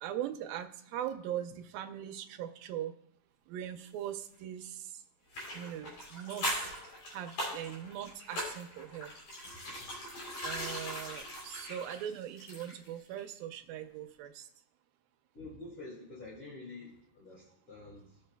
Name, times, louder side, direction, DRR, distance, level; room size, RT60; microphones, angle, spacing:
voice 1, 0.0-2.9 3.5-4.9 5.5-6.7 7.1-9.1 10.4-14.5, right 11 dB, 75° right, 6 dB, 2.3 m, -40 dB
sound 1, 5.3-12.9 13.2-13.3, equal, 55° left, 4.6 m, -40 dB
voice 2, 15.3-18.2, left 2 dB, 30° left, -6 dB, 2.1 m, -48 dB
19.0 x 6.9 x 2.2 m, 0.75 s
omnidirectional pair, 4.6 m